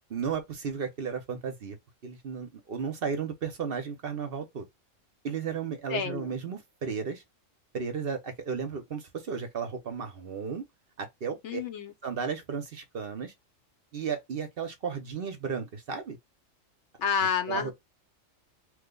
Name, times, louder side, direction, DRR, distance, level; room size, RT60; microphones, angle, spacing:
voice 1, 0.1-1.8 2.0-4.7 5.2-7.2 7.7-10.7 11.0-11.6 12.0-13.3 13.9-16.2 17.5-17.7, right 6 dB, 55° right, 0.8 m, -34 dB
voice 2, 5.9-6.3 11.4-11.9 17.0-17.7, left 6 dB, 70° left, 0.9 m, -29 dB
3.0 x 2.1 x 3.6 m
omnidirectional pair, 1.3 m